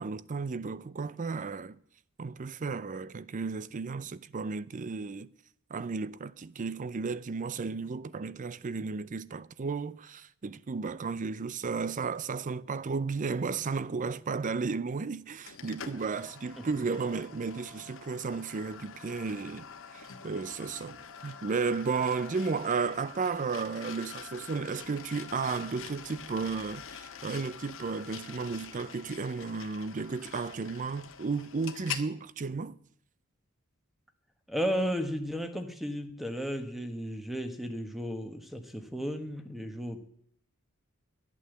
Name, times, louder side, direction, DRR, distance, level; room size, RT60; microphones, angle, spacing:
voice 1, 0.0-1.8 2.2-5.3 5.7-19.7 19.9-21.0 21.2-32.8, right 4 dB, 35° right, 0.5 m, -33 dB
sound 1, 15.5-32.1, left 7 dB, 60° left, 1.3 m, -45 dB
voice 2, 34.5-40.1, equal, ahead, 1.3 m, -34 dB
11.5 x 8.4 x 7.6 m
head